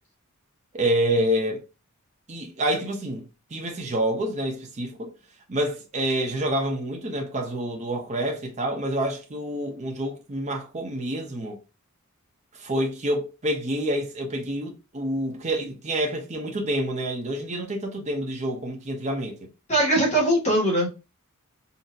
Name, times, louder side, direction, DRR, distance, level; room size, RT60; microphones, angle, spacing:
voice 1, 0.7-1.6 2.3-5.1 5.5-11.6 12.5-19.4, right 1 dB, 30° right, 0.7 m, -28 dB
voice 2, 19.7-20.9, right 1 dB, 30° left, 1.7 m, -21 dB
3.9 x 2.7 x 2.5 m
head